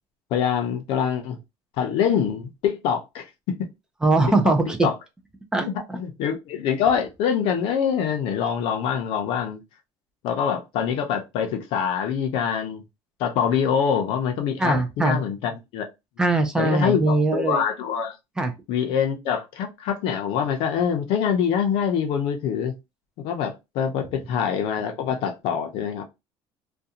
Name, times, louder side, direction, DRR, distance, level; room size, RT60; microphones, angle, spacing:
voice 1, 0.3-1.4 1.8-3.6 4.4-4.5 4.8-4.9 5.9-9.6 10.2-12.8 13.2-15.9 16.6-18.2 18.7-22.7 23.2-26.0, left 7 dB, 60° left, 0.5 m, -25 dB
voice 2, 4.0-4.8 5.5-6.0 14.6-15.2 16.2-17.6 18.4-18.5, right 2 dB, 5° right, 0.3 m, -21 dB
2.4 x 2.2 x 2.7 m
cardioid pair, 180°, 10 cm